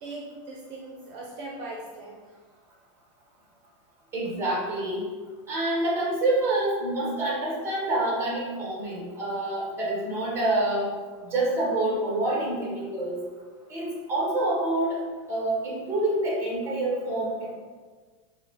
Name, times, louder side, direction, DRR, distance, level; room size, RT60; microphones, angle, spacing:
voice 1, 0.0-2.4, right 2 dB, 45° right, -3 dB, 0.6 m, -40 dB
voice 2, 4.1-5.1 5.5-10.9 11.2-13.2 13.7-15.0 15.3-17.5, right 2 dB, 15° right, -4 dB, 1.0 m, -27 dB
4.8 x 2.1 x 2.9 m, 1.4 s
supercardioid pair, 155°, 17 cm